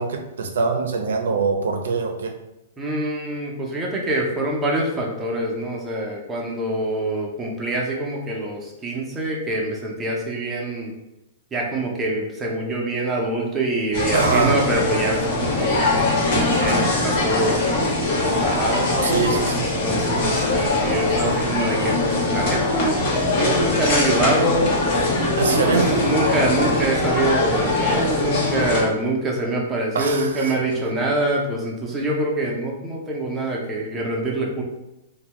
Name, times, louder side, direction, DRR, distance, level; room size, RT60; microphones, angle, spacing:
voice 1, 0.0-2.3 14.1-14.6 19.0-19.7 25.4-26.0 29.9-30.5, right 4 dB, 80° right, 4 dB, 0.5 m, -23 dB
voice 2, 2.8-10.9 11.5-16.1 16.4-17.6 18.2-19.0 19.8-24.7 25.5-34.6, right 1 dB, 15° right, -2 dB, 0.6 m, -25 dB
sound 1, 13.9-28.8, left 2 dB, 45° left, 0.9 m, -21 dB
2.6 x 2.2 x 3.0 m, 0.92 s
hypercardioid pair, 140°, 0 cm